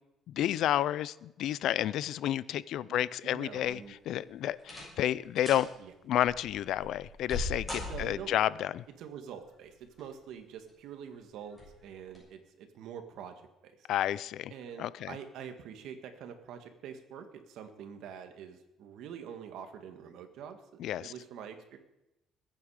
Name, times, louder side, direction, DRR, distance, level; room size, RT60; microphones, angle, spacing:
voice 1, 0.3-3.8 4.1-5.7 6.1-8.8 13.9-14.5 14.8-15.1 20.8-21.1, left 12 dB, 65° left, 19 dB, 0.5 m, -31 dB
voice 2, 2.9-4.0 5.8-5.9 7.8-8.4 9.0-13.4 13.6-13.7 14.5-20.6 21.0-21.8, right 8 dB, 70° right, 7 dB, 1.8 m, -45 dB
sound 1, 3.6-4.1 4.6-5.0 5.4-5.7 6.3-8.4 9.7-10.2 10.7-10.8 11.5-11.7 12.1-12.2, left 1 dB, 5° left, 6.6 m, -40 dB
21.0 x 8.6 x 4.9 m, 0.91 s
cardioid pair, 135°, 0 cm